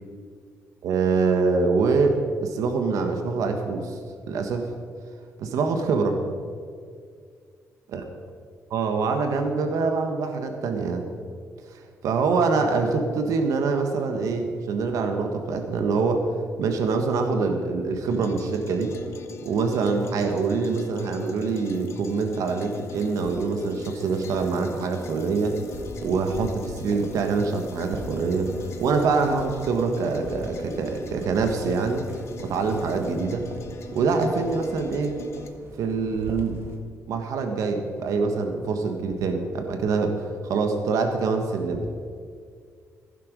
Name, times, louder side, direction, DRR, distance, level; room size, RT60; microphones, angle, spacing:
voice 1, 0.8-4.0 4.3-4.7 5.4-6.2 7.9-8.0 8.7-11.0 11.7-16.2 16.6-19.0 19.4-25.6 26.0-28.5 28.8-32.0 32.4-33.5 33.9-35.2 35.8-36.6 37.1-40.1 40.4-41.8, right 4 dB, 75° right, 5 dB, 1.4 m, -25 dB
sound 1, 18.1-35.5, left 4 dB, 55° left, 1.1 m, -42 dB
sound 2, 25.7-36.8, right 1 dB, 45° right, 1.6 m, -41 dB
15.0 x 11.0 x 5.3 m, 2.1 s
cardioid pair, 165°, 6 cm